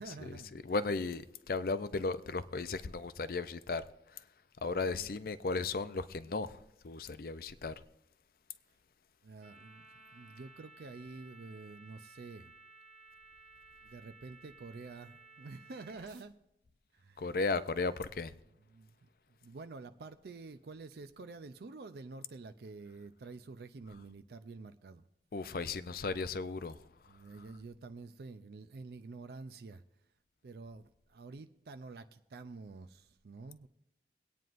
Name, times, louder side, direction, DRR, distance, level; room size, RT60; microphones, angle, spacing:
voice 1, 0.0-0.5 4.8-5.1 9.2-12.5 13.8-16.4 16.9-17.4 18.7-19.1 19.4-25.1 27.1-29.8 30.4-33.7, right 3 dB, 60° right, 0.4 m, -48 dB
voice 2, 0.6-3.8 4.1-4.2 4.6-6.6 6.8-7.7 17.2-18.3 25.3-26.8, left 3 dB, 55° left, 0.5 m, -35 dB
sound 1, 9.4-16.2, right 3 dB, 40° right, 1.6 m, -57 dB
23.5 x 9.2 x 2.5 m
head